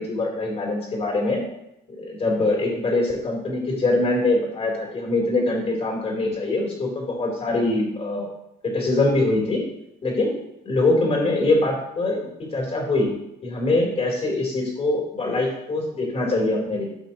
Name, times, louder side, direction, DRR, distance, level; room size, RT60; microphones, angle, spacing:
voice 1, 0.0-1.4 1.9-8.3 8.6-9.6 10.0-10.4 10.7-13.1 13.4-16.9, left 2 dB, 35° left, -1 dB, 3.5 m, -23 dB
14.5 x 5.7 x 3.0 m, 0.84 s
cardioid pair, 110°, 17 cm